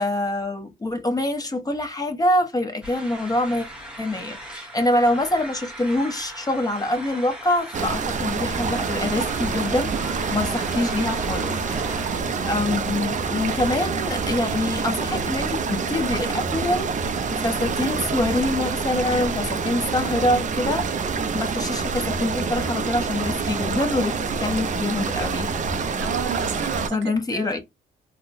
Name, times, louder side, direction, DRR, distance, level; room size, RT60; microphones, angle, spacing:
voice 1, 0.0-3.7 4.0-11.6 11.8-12.2 12.4-16.9 17.3-21.1 21.3-25.5 26.9-27.6, left 1 dB, 20° left, 0.9 m, -25 dB
sound 1, 2.8-12.2, equal, 5° right, 1.1 m, -39 dB
sound 2, 7.7-26.9, right 5 dB, 40° right, 0.5 m, -26 dB
voice 2, 13.4-14.4 26.0-27.6, right 7 dB, 70° right, 0.8 m, -34 dB
3.7 x 2.2 x 2.6 m
cardioid pair, 90°, 20 cm